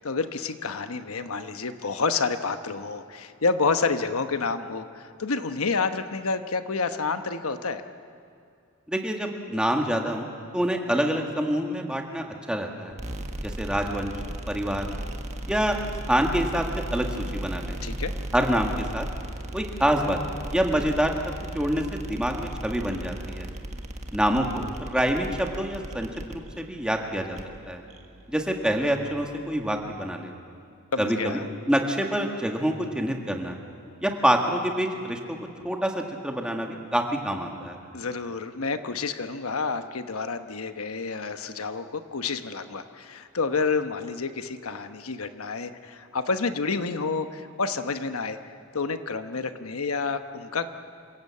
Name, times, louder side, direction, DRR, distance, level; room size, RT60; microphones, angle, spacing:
voice 1, 0.0-7.8 17.8-18.1 30.9-31.5 37.9-48.4 48.7-50.8, left 4 dB, 85° left, 8 dB, 1.1 m, -29 dB
voice 2, 8.9-10.3 10.5-12.9 13.4-14.1 14.5-14.9 15.5-15.8 16.1-16.7 16.9-17.8 18.3-19.1 19.5-20.2 20.5-21.1 21.5-23.5 24.1-27.4 27.7-27.8 28.3-30.3 31.0-31.4 31.7-33.6 34.0-35.4 35.6-37.8, equal, 5° right, 2 dB, 1.8 m, -26 dB
sound 1, 12.9-30.0, right 1 dB, 35° right, 1.4 m, -36 dB
27.5 x 16.5 x 8.4 m, 2.4 s
head